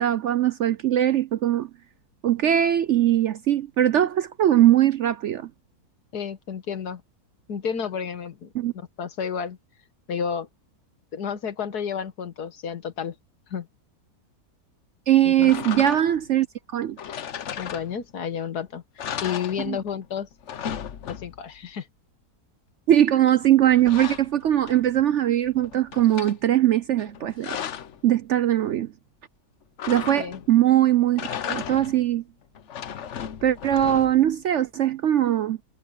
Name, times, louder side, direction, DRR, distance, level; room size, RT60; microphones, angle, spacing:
voice 1, 0.0-1.7 2.2-5.5 8.5-8.7 15.1-16.5 16.7-17.0 19.7-19.8 22.9-27.6 28.0-28.9 29.9-32.2 33.4-35.6, right 12 dB, 65° right, 0.8 m, -21 dB
voice 2, 6.1-7.0 7.5-9.6 10.1-10.5 11.1-13.2 13.5-13.7 15.2-15.5 17.6-20.3 21.0-21.9 30.2-30.4, left 7 dB, 75° left, 1.9 m, -31 dB
sound 1, 15.4-16.3 17.0-18.3 18.6-18.7 19.0-20.1 20.3-21.6 23.3-25.1 25.5-26.4 27.1-28.0 29.8-30.6 31.1-32.1 32.5-34.3, left 8 dB, 55° left, 1.0 m, -35 dB
omnidirectional pair, 1.7 m